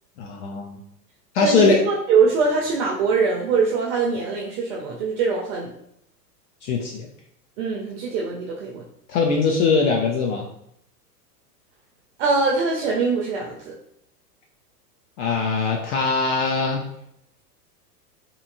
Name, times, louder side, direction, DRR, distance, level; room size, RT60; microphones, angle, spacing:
voice 1, 0.2-0.8 1.3-1.8 6.6-7.1 9.1-10.4 15.2-16.8, left 4 dB, 50° left, 1 dB, 0.5 m, -21 dB
voice 2, 1.4-5.7 7.6-8.8 12.2-13.7, right 4 dB, 45° right, -2 dB, 0.6 m, -22 dB
2.7 x 2.5 x 2.5 m, 0.75 s
hypercardioid pair, 100°, 49 cm